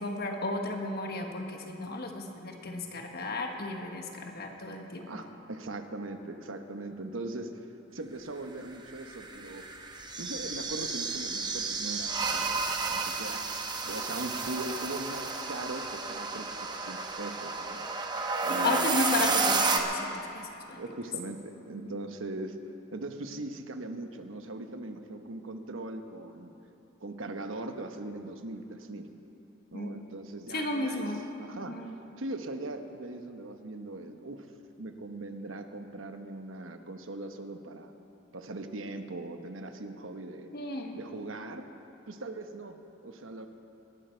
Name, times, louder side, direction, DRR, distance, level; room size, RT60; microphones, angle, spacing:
voice 1, 0.0-5.3 18.5-20.8 29.7-30.0 30.5-31.3 31.7-31.9 40.5-41.0, left 2 dB, 50° left, 3 dB, 1.4 m, -34 dB
voice 2, 5.1-7.6 7.9-9.6 10.2-17.8 18.4-18.9 20.8-22.6 22.9-26.5 27.0-29.1 29.7-31.1 31.4-34.5 34.8-37.9 38.3-40.5 40.9-41.7 42.1-42.8 43.0-43.5, right 2 dB, 80° right, 7 dB, 1.0 m, -40 dB
sound 1, 8.9-19.8, right 4 dB, 20° right, 1.0 m, -32 dB
19.5 x 12.0 x 4.5 m, 2.8 s
head